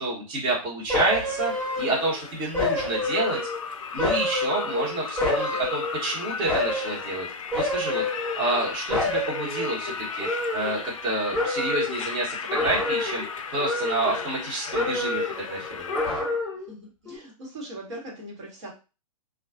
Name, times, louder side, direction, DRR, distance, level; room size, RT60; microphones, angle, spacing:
voice 1, 0.0-3.4 3.9-7.3 7.5-13.2 13.5-15.9, right 2 dB, 25° right, -4 dB, 1.0 m, -29 dB
sound 1, 0.9-2.2 2.5-3.6 4.0-6.1 6.5-7.0 7.5-8.6 8.9-11.1 11.3-12.0 12.5-13.3 13.6-14.4 14.7-15.4 15.9-16.7 17.1-17.2, left 2 dB, 5° left, 0.7 m, -28 dB
sound 2, 1.0-16.1, left 5 dB, 60° left, 0.4 m, -36 dB
voice 2, 16.7-18.7, right 1 dB, 50° right, -3 dB, 1.2 m, -40 dB
2.4 x 2.3 x 2.4 m, 0.31 s
figure-of-eight pair, 115°, 19 cm